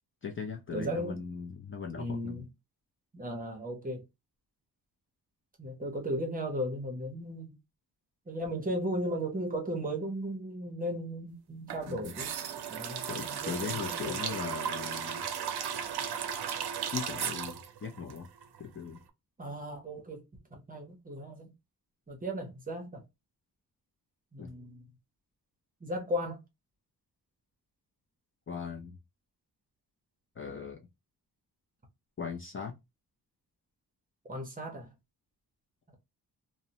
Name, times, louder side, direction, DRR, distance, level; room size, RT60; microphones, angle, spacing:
voice 1, 0.2-2.4 11.9-12.1 13.1-15.3 16.9-18.3 18.6-19.0 24.4-24.5 28.5-29.0 30.4-30.8 32.2-32.7, left 6 dB, 35° left, 0.4 m, -39 dB
voice 2, 0.7-1.2 2.0-2.5 3.1-4.0 5.6-7.6 8.3-12.4 12.7-14.4 15.4-15.5 19.4-21.5 22.1-23.0 24.3-24.9 25.8-26.4 34.3-34.9, equal, 20° right, 0.6 m, -36 dB
sound 1, 11.7-18.7 19.0-19.1, right 8 dB, 75° right, 0.5 m, -36 dB
2.6 x 2.0 x 2.8 m
wide cardioid pair, 160°, 39 cm